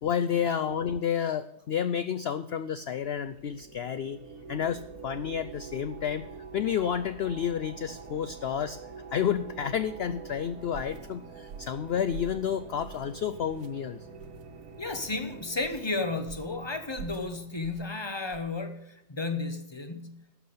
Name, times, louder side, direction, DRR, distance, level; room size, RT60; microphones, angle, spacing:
voice 1, 0.0-4.2 4.5-6.3 6.5-8.8 9.1-14.1, left 8 dB, 70° left, 12 dB, 0.6 m, -30 dB
sound 1, 2.9-18.3, right 5 dB, 70° right, 1.7 m, -46 dB
sound 2, 10.7-11.0 11.5-11.8 12.1-12.4 12.8-13.1 13.5-13.7 14.2-14.4 14.9-15.2 15.6-15.8 16.3-16.6 16.9-17.3 17.6-17.9 18.3-18.5, right 7 dB, 85° right, 1.3 m, -45 dB
voice 2, 14.8-20.4, left 3 dB, 20° left, 7 dB, 1.0 m, -33 dB
12.0 x 6.1 x 7.9 m, 0.84 s
omnidirectional pair, 1.6 m